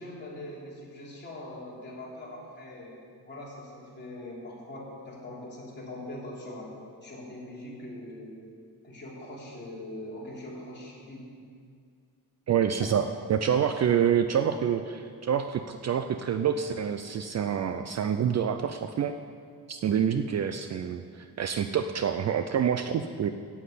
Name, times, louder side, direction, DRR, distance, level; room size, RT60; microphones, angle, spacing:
voice 1, 0.0-2.9 3.2-6.7 7.0-8.4 8.8-11.3 12.8-13.0 13.6-13.7 14.5-14.8 19.8-20.2, left 1 dB, 25° left, -5 dB, 3.1 m, -42 dB
voice 2, 12.5-19.1 19.7-23.3, right 8 dB, 45° right, 8 dB, 0.4 m, -27 dB
9.4 x 8.6 x 8.4 m, 2.2 s
wide cardioid pair, 160°, 39 cm